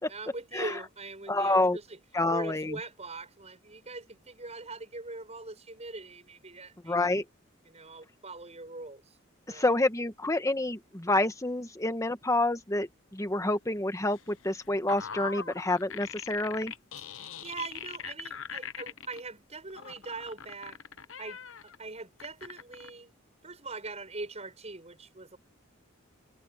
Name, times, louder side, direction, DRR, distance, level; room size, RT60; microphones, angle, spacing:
voice 1, 0.1-2.0 2.3-7.1 7.7-9.2 9.5-9.8 17.1-20.8 21.2-23.1 23.4-25.4, right 3 dB, 35° right, 7.0 m, -42 dB
voice 2, 1.3-1.8 2.1-2.8 6.8-7.2 9.5-16.7, left 2 dB, 15° left, 1.4 m, -28 dB
sound 1, 14.1-19.2 19.7-21.8 22.2-22.9, left 7 dB, 70° left, 1.0 m, -41 dB
head